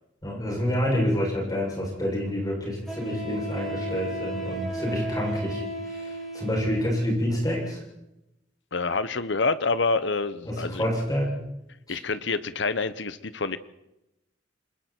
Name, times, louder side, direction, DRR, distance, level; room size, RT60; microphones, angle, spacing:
voice 1, 0.2-7.8 10.5-11.3 11.9-12.0, equal, 20° left, -3 dB, 7.3 m, -28 dB
Wind instrument woodwind instrument, 1.6-1.7 2.9-6.9, right 1 dB, ahead, 7.2 m, -34 dB
voice 2, 8.7-10.8 11.9-13.6, left 4 dB, 65° left, 14 dB, 1.0 m, -27 dB
29.0 x 20.5 x 4.5 m, 0.88 s
head